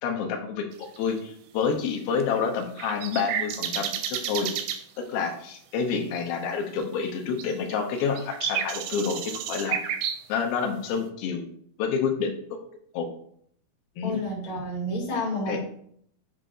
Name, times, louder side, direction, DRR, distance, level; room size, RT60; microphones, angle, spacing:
voice 1, 0.0-4.5 5.0-9.8 10.3-11.4 11.8-12.3 12.9-13.1 14.0-14.2 15.5-15.6, left 6 dB, 75° left, 2 dB, 2.4 m, -28 dB
sound 1, 0.7-1.0 2.2-4.8 6.4-6.5 6.8-7.1 7.4-10.2, right 9 dB, 80° right, 2.2 m, -31 dB
voice 2, 14.0-15.6, left 1 dB, 55° left, -4 dB, 2.4 m, -30 dB
7.6 x 2.6 x 5.1 m, 0.65 s
omnidirectional pair, 4.7 m